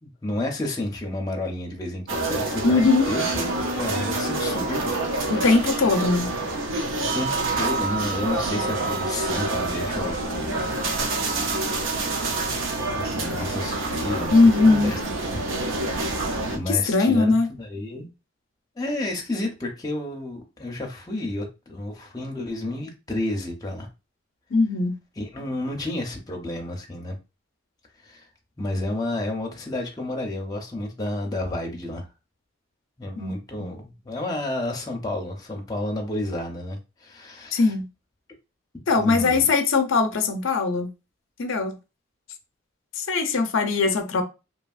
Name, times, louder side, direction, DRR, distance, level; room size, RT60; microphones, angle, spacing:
voice 1, 0.0-5.5 7.0-11.2 11.7-11.9 12.9-14.4 14.7-15.0 16.5-18.1 18.8-23.9 25.2-27.1 28.0-28.2 28.6-32.0 33.0-37.7 39.0-39.5, left 1 dB, 20° left, 0.6 m, -31 dB
sound 1, 2.1-16.6, right 2 dB, 70° right, 0.5 m, -27 dB
voice 2, 2.6-3.1 5.3-6.3 14.3-14.9 16.7-17.5 24.5-25.0 33.2-33.3 33.6-33.7 37.5-37.8 38.9-40.9 41.4-41.7 43.0-44.2, left 3 dB, 80° left, 0.5 m, -20 dB
2.8 x 2.7 x 2.4 m
head